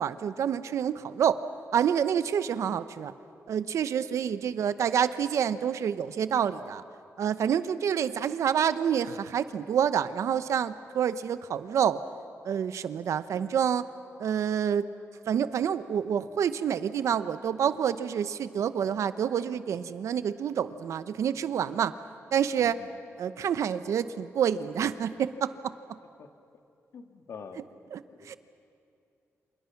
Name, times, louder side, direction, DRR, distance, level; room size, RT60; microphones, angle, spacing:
voice 1, 0.0-1.4 1.7-3.1 3.5-6.8 7.2-12.0 12.4-13.8 14.2-14.8 15.3-22.0 22.3-22.8 23.2-25.7 27.9-28.4, right 8 dB, 75° right, 13 dB, 0.9 m, -28 dB
voice 2, 22.6-22.9 26.2-26.3 26.9-27.6 28.1-28.4, left 6 dB, 65° left, 6 dB, 1.8 m, -45 dB
29.0 x 27.5 x 6.0 m, 2.5 s
cardioid pair, 105°, 5 cm